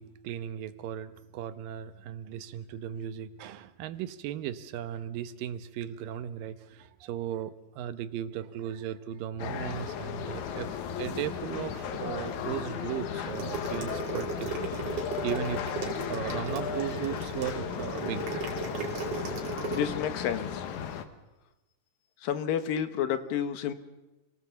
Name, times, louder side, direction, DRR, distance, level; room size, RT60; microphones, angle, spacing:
voice 1, 0.0-18.3 19.6-19.7, right 10 dB, 85° right, 12 dB, 2.7 m, -37 dB
sound 1, 9.4-21.1, left 8 dB, 70° left, 2.5 m, -35 dB
sound 2, 13.2-19.9, right 5 dB, 50° right, 3.6 m, -36 dB
voice 2, 19.7-20.6 22.2-23.7, left 9 dB, 90° left, 10 dB, 3.1 m, -30 dB
27.0 x 18.5 x 7.1 m, 1.0 s
omnidirectional pair, 3.9 m